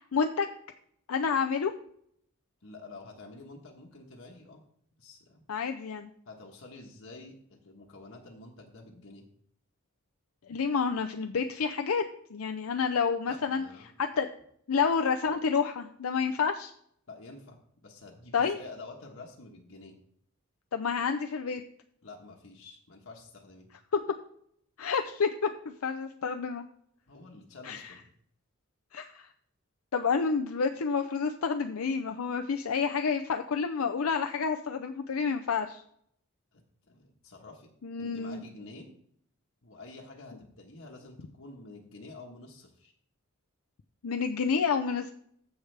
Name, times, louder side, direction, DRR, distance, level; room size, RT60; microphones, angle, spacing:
voice 1, 0.1-0.5 1.1-1.7 5.5-6.1 10.5-12.0 12.3-13.6 14.0-14.3 14.7-16.7 18.3-18.6 20.7-21.6 24.8-26.7 27.6-27.9 28.9-29.3 29.9-35.8 37.8-38.4 44.0-45.1, left 5 dB, 90° left, 6 dB, 0.5 m, -29 dB
voice 2, 2.6-4.6 5.0-5.4 6.3-9.3 13.3-13.9 17.1-17.6 17.8-20.0 22.0-23.7 27.1-28.1 36.5-36.6 36.9-37.7 38.0-38.9 39.6-42.9, left 2 dB, 70° left, 0 dB, 1.3 m, -48 dB
14.5 x 4.9 x 3.3 m, 0.67 s
head